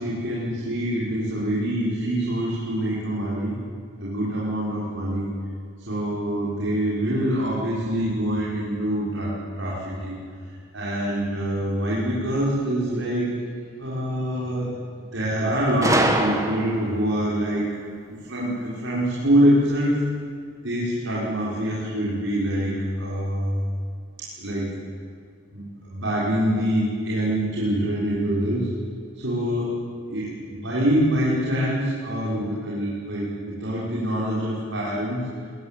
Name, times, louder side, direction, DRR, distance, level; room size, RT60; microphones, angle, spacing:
voice 1, 0.0-3.6 4.0-5.3 5.9-10.2 10.7-13.5 13.8-14.7 15.1-17.7 18.1-20.0 20.6-23.7 24.2-24.8 25.5-28.7 29.1-29.8 30.1-35.2, equal, 75° right, -7 dB, 6.0 m, -25 dB
Gunshot gunfire, 15.8-17.0, right 1 dB, 15° right, 1.9 m, -23 dB
21.5 x 21.0 x 9.4 m, 2.1 s
head